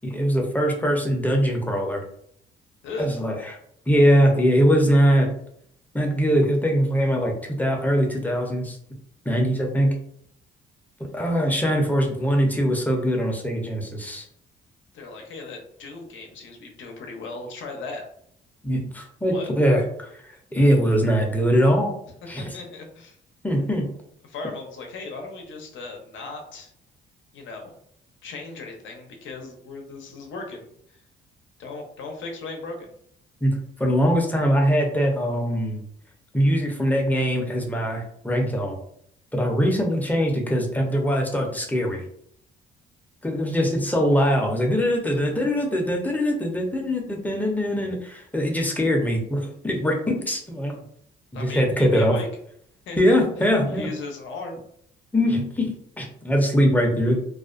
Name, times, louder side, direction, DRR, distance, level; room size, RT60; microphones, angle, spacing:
voice 1, 0.0-2.0 3.0-3.6 3.9-5.3 5.9-8.8 9.3-10.0 11.1-14.2 18.6-20.1 20.5-21.9 22.3-22.4 23.4-23.8 33.4-35.8 36.3-38.8 39.3-42.0 43.2-50.8 51.3-52.1 53.0-53.9 55.1-57.2, equal, 10° left, 0 dB, 0.6 m, -22 dB
voice 2, 2.8-3.2 14.9-18.0 19.3-19.5 22.4-23.2 24.2-26.7 27.3-27.7 28.2-31.0 31.6-32.9 51.3-52.3 52.9-53.0 53.7-54.6, left 3 dB, 75° left, 2 dB, 0.6 m, -37 dB
2.4 x 2.1 x 2.4 m, 0.68 s
cardioid pair, 90°, 20 cm